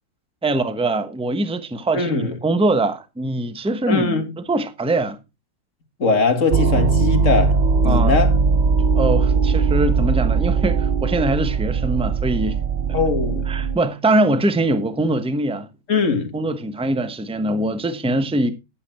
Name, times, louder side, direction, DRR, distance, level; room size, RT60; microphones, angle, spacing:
voice 1, 0.4-5.2 7.8-8.1 9.0-12.6 12.9-13.0 13.5-15.7 16.3-18.5, right 2 dB, 5° right, 0.8 m, -22 dB
voice 2, 1.9-2.4 3.9-4.2 6.0-8.4 12.9-13.5 15.9-16.3, left 4 dB, 55° left, 2.2 m, -21 dB
sound 1, 6.5-13.8, right 5 dB, 60° right, 0.5 m, -19 dB
11.5 x 8.1 x 4.4 m
omnidirectional pair, 1.6 m